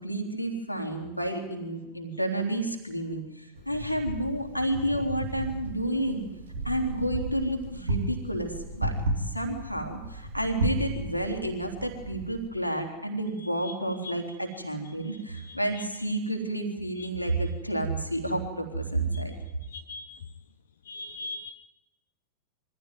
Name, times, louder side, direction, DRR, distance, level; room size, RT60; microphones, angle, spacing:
voice 1, 0.0-6.3 6.6-19.3, right 1 dB, 90° left, 3.4 m, -30 dB
Wind, 3.6-12.5, right 2 dB, 70° right, 3.5 m, -34 dB
voice 2, 19.7-20.1 20.9-21.5, left 2 dB, 65° left, 0.9 m, -38 dB
23.5 x 15.0 x 9.3 m
figure-of-eight pair, 90°, 0 cm